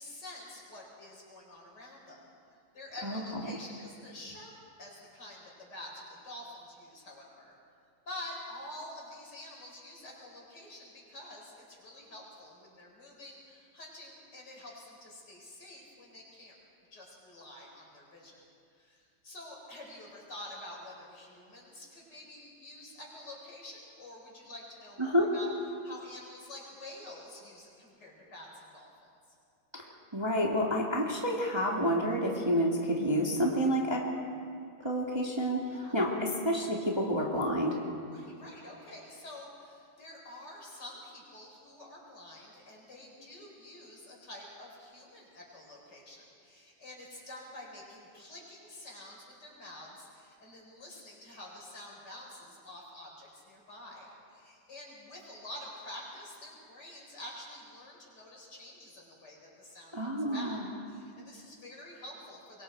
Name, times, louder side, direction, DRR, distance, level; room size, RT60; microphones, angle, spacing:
voice 1, 0.0-2.2 2.7-4.5 4.8-7.6 8.0-16.5 16.9-18.4 18.8-25.5 25.8-28.9 33.6-33.7 35.7-36.0 38.1-60.6 60.9-62.6, left 1 dB, 55° left, -2 dB, 5.2 m, -48 dB
voice 2, 25.0-25.3 29.7-34.0 34.8-37.8 59.9-60.6, equal, 15° right, -2 dB, 1.8 m, -29 dB
25.0 x 22.5 x 4.6 m, 2.3 s
omnidirectional pair, 2.1 m